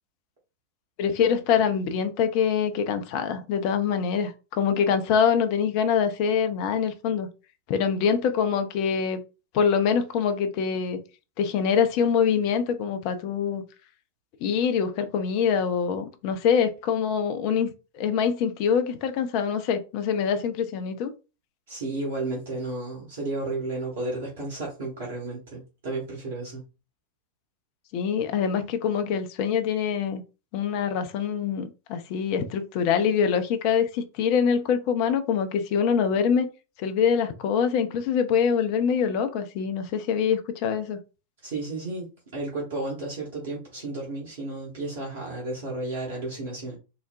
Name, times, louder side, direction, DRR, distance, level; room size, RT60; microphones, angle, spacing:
voice 1, 1.0-7.3 7.7-9.2 9.5-11.0 11.4-13.6 14.4-21.1 27.9-30.2 30.5-36.5 36.8-41.0, left 7 dB, 45° left, 0.5 m, -24 dB
voice 2, 21.7-26.6 41.4-46.8, right 2 dB, 60° right, 1.2 m, -33 dB
3.9 x 2.1 x 2.5 m
figure-of-eight pair, 90°, 0 cm